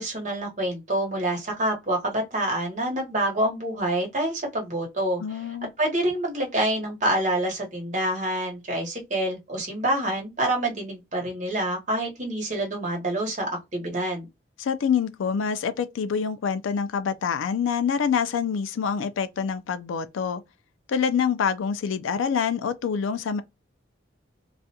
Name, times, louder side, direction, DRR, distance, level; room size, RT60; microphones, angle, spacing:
voice 1, 0.0-5.4 5.8-14.3, right 1 dB, 40° right, 0.9 m, -27 dB
voice 2, 5.2-5.7 14.6-20.4 20.9-23.4, left 6 dB, 80° left, 0.4 m, -26 dB
2.4 x 2.2 x 2.7 m
head